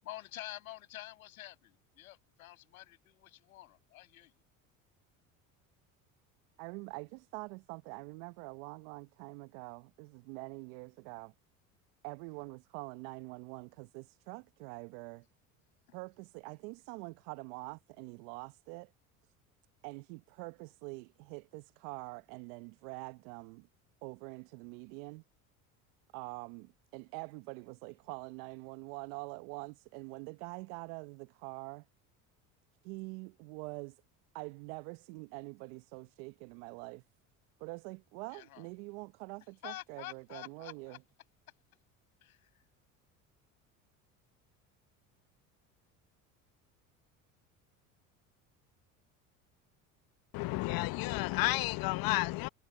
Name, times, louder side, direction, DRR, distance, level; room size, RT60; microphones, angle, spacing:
voice 1, 0.0-4.4 15.9-16.0 38.3-38.7 39.6-41.0 42.2-42.6, left 15 dB, 85° left, 6.1 m, -48 dB
voice 2, 6.6-11.3 12.0-15.3 15.9-18.9 19.8-23.7 24.0-25.2 26.1-31.8 32.8-34.0 34.3-37.0 37.6-41.0, right 28 dB, 70° right, 1.0 m, -45 dB
voice 3, 50.3-52.5, left 21 dB, 55° left, 0.9 m, -31 dB
hypercardioid pair, 75°, 41 cm